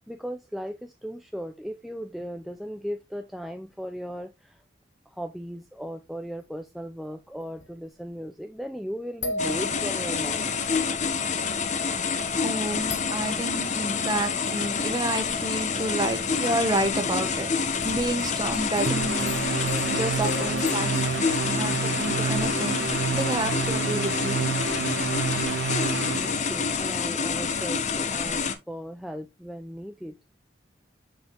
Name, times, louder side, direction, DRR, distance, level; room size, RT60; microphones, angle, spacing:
voice 1, 0.1-4.6 5.1-10.6 26.1-30.2, equal, ahead, 0.3 m, -37 dB
sound 1, 6.6-6.7 7.3-8.2 9.2-10.6 12.0-12.1 12.5-12.6 12.9-13.6 15.5-15.6 16.6-16.7 17.8-21.4, left 3 dB, 70° left, 1.3 m, -38 dB
sound 2, 9.4-28.5, left 5 dB, 40° left, 0.7 m, -28 dB
voice 2, 12.4-17.5 17.8-22.8 23.1-24.4, right 1 dB, 20° right, 0.9 m, -30 dB
sound 3, 18.9-26.4, right 6 dB, 80° right, 0.6 m, -29 dB
6.8 x 5.6 x 2.8 m
head